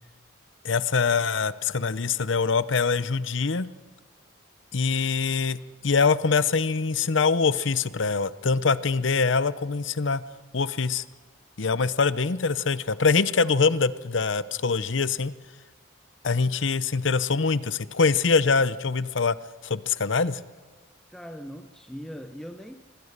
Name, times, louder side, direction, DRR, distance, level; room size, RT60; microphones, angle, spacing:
voice 1, 0.6-3.7 4.7-10.2 10.5-11.0 11.6-15.3 16.2-19.4 19.6-20.4, left 4 dB, 70° left, 16 dB, 0.7 m, -24 dB
voice 2, 21.1-22.8, equal, ahead, 6 dB, 0.7 m, -40 dB
25.5 x 22.0 x 6.7 m, 1.4 s
head